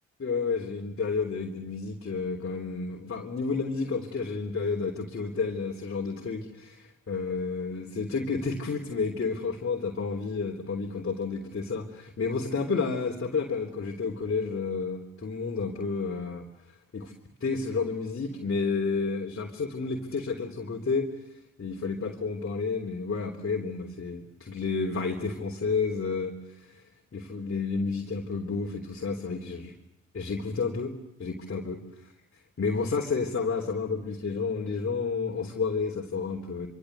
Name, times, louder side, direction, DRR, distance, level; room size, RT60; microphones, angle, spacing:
voice 1, 0.2-17.1 17.4-21.1 21.6-26.8 27.1-29.7 30.1-30.9 31.2-31.8 32.6-36.7, left 4 dB, 40° left, 1 dB, 3.5 m, -31 dB
26.0 x 25.5 x 8.1 m, 0.82 s
hypercardioid pair, 45°, 35 cm